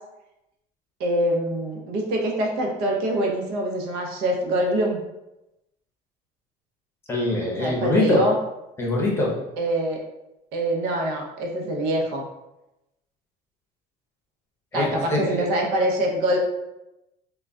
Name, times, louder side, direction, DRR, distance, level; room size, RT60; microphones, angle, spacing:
voice 1, 1.0-5.0 7.6-8.4 9.6-10.0 10.5-12.3 14.7-16.4, right 1 dB, 70° right, 0 dB, 0.9 m, -24 dB
voice 2, 7.1-8.2 8.8-9.3 14.7-15.5, left 1 dB, 15° left, -3 dB, 0.7 m, -23 dB
3.8 x 2.3 x 3.4 m, 0.93 s
cardioid pair, 165°, 16 cm